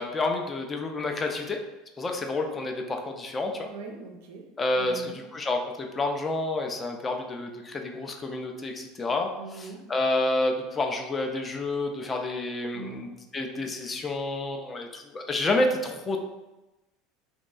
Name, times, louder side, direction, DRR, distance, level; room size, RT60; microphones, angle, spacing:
voice 1, 0.0-1.6 2.0-3.7 4.6-9.3 9.9-16.2, left 2 dB, 20° left, 3 dB, 0.3 m, -29 dB
voice 2, 3.6-4.4 4.7-5.2 9.4-9.8 12.7-13.0, right 4 dB, 60° right, 2 dB, 0.3 m, -42 dB
2.6 x 2.2 x 2.2 m, 1.0 s
figure-of-eight pair, 70°, 0 cm